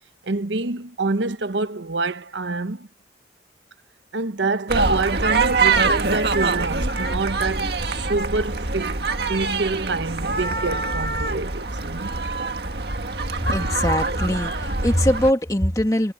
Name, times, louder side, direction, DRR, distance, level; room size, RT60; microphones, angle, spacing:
voice 1, 0.2-2.9 4.1-9.0 9.3-12.2, right 3 dB, 80° right, 0.9 m, -27 dB
sound 1, 4.7-15.3, right 3 dB, 60° right, 1.8 m, -24 dB
sound 2, 6.3-13.6, right 2 dB, 15° right, 7.1 m, -54 dB
voice 2, 13.4-16.1, equal, 20° left, 2.1 m, -21 dB
head